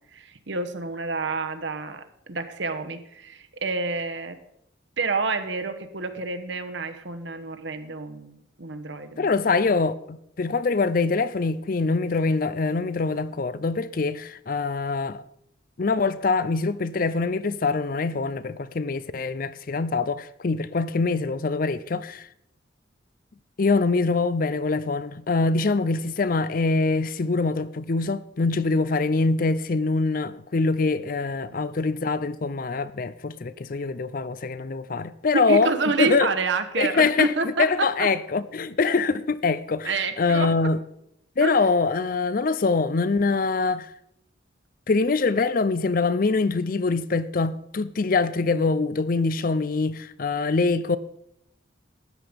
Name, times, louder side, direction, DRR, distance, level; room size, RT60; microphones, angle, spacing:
voice 1, 0.1-4.4 5.0-9.3 35.3-38.1 39.8-40.7 41.4-41.7, right 4 dB, 70° right, 1.2 m, -28 dB
voice 2, 9.2-15.2 15.8-22.3 23.6-35.7 36.0-36.3 36.8-37.3 37.6-40.8 41.4-43.9 44.9-51.0, left 4 dB, 45° left, 0.5 m, -24 dB
13.0 x 9.8 x 5.2 m
head